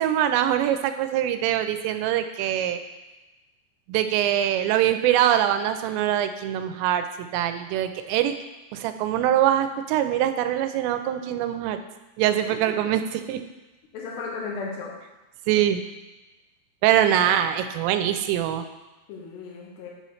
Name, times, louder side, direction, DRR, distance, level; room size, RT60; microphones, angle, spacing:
voice 1, 0.0-2.8 3.9-7.1 7.3-8.3 8.7-11.8 12.2-13.4 15.5-15.8 16.8-18.6, right 11 dB, 85° right, 9 dB, 2.8 m, -23 dB
voice 2, 12.5-12.9 13.9-14.9 17.0-17.3 19.1-19.9, left 4 dB, 80° left, -3 dB, 3.2 m, -35 dB
8.1 x 3.1 x 5.6 m, 1.1 s
omnidirectional pair, 5.0 m